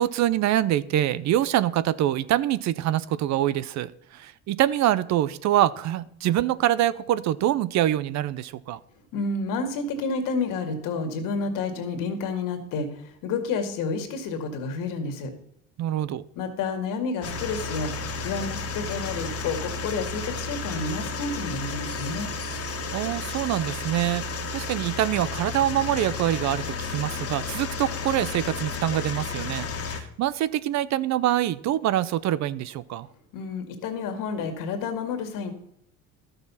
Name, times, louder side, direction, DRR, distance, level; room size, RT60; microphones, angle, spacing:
voice 1, 0.0-8.8 15.8-16.2 22.9-24.3 24.5-33.1, right 12 dB, 55° right, 18 dB, 0.6 m, -25 dB
voice 2, 9.1-15.3 16.4-17.9 18.2-22.3 33.3-35.5, left 4 dB, 70° left, 6 dB, 2.2 m, -30 dB
sound 1, 17.2-30.0, left 4 dB, 45° left, 1.7 m, -32 dB
12.5 x 6.8 x 5.6 m, 0.74 s
supercardioid pair, 105°, 34 cm